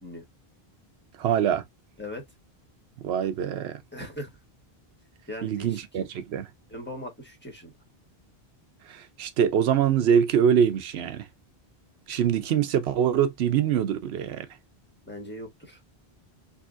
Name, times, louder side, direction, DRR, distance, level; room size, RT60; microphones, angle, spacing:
voice 1, 1.2-1.6 3.0-3.8 5.4-6.5 8.9-11.3 12.1-14.5, right 8 dB, 85° right, 0.9 m, -24 dB
voice 2, 3.9-4.3 5.3-5.8 6.7-7.7 15.1-15.8, left 1 dB, 10° left, 1.3 m, -39 dB
3.8 x 2.7 x 2.4 m
omnidirectional pair, 1.0 m